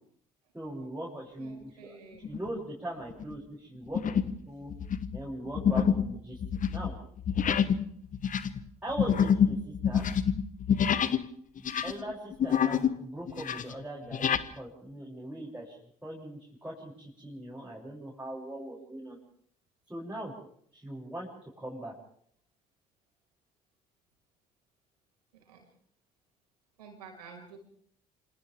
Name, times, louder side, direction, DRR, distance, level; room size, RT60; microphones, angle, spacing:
voice 1, 0.5-4.7 5.1-6.9 8.8-10.1 11.6-14.3 14.6-19.2 19.9-20.3 20.7-21.9, right 1 dB, 5° right, -6 dB, 7.7 m, -40 dB
voice 2, 1.4-2.3 25.5-25.7 26.8-27.6, right 5 dB, 85° right, 2 dB, 5.6 m, -50 dB
sound 1, 2.2-2.6 3.1-3.3 3.9-4.4 4.7-11.3 11.6-13.0 13.3-14.5, left 7 dB, 40° left, 1.3 m, -27 dB
28.0 x 26.5 x 3.7 m, 0.63 s
hypercardioid pair, 50°, 20 cm